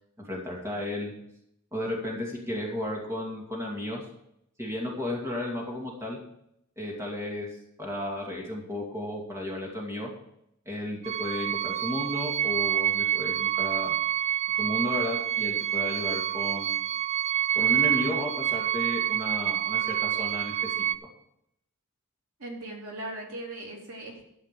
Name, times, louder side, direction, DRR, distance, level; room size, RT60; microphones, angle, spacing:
voice 1, 0.2-1.1 1.7-4.0 4.6-6.2 6.8-7.5 7.8-10.1 10.7-14.0 14.6-16.8 17.5-20.7, left 1 dB, 15° right, -2 dB, 2.5 m, -33 dB
sound 1, 11.0-20.9, right 11 dB, 30° right, 0.3 m, -27 dB
voice 2, 22.4-24.2, right 1 dB, 85° right, -2 dB, 3.3 m, -38 dB
12.0 x 5.6 x 7.0 m, 0.77 s
head